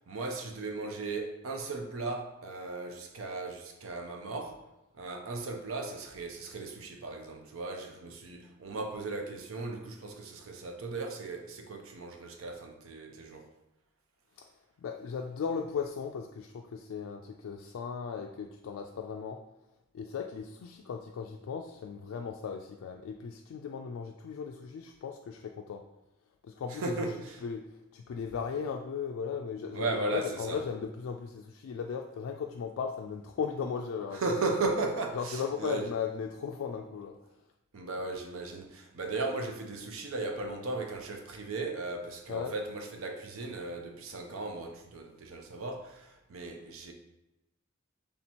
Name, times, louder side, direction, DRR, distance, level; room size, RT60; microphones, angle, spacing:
voice 1, 0.1-4.6 5.0-13.5 26.8-27.4 29.7-30.6 34.1-35.9 37.7-46.9, right 3 dB, 90° right, 0.6 m, -36 dB
voice 2, 14.8-19.5 19.9-25.9 26.4-27.1 27.4-34.4 35.1-37.2 42.3-42.6, left 6 dB, 85° left, 0.3 m, -37 dB
3.5 x 2.9 x 4.2 m
head